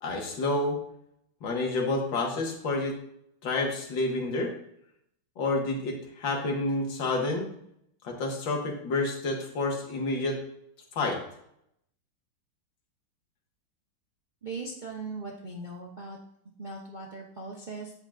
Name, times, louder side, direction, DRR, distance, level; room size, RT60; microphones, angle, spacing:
voice 1, 0.0-0.8 1.4-3.0 3.4-4.5 5.4-7.5 8.0-10.4 10.9-11.2, left 2 dB, 65° left, 1 dB, 2.3 m, -29 dB
voice 2, 14.4-16.2 16.6-17.9, right 3 dB, 35° right, -2 dB, 0.8 m, -39 dB
14.5 x 5.2 x 2.5 m, 0.73 s
omnidirectional pair, 2.3 m